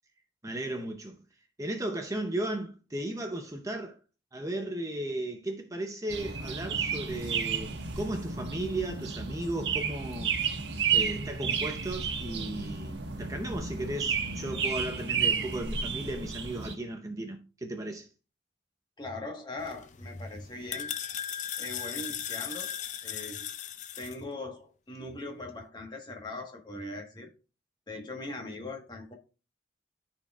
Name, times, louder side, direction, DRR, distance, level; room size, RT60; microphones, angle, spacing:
voice 1, 0.4-1.2 1.6-4.0 4.3-10.3 10.9-18.1, right 1 dB, 20° right, 0.6 m, -35 dB
sound 1, 6.1-16.8, right 6 dB, 85° right, 1.2 m, -32 dB
voice 2, 19.0-20.9 21.6-22.7 23.0-23.4 24.0-27.3 27.9-29.1, left 2 dB, 25° left, 1.4 m, -40 dB
sound 2, 19.6-24.2, left 9 dB, 45° left, 0.4 m, -37 dB
13.0 x 4.3 x 2.4 m
head